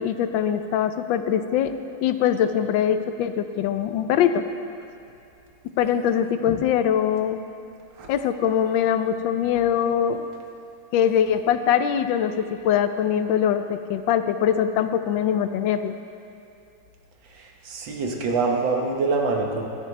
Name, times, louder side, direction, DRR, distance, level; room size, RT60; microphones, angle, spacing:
voice 1, 0.0-1.7 2.0-4.4 5.8-7.4 8.1-10.2 10.9-15.9, left 9 dB, 85° left, 9 dB, 1.4 m, -22 dB
voice 2, 17.7-19.6, right 3 dB, 85° right, 1 dB, 2.0 m, -24 dB
16.5 x 12.0 x 3.2 m, 2.6 s
omnidirectional pair, 2.0 m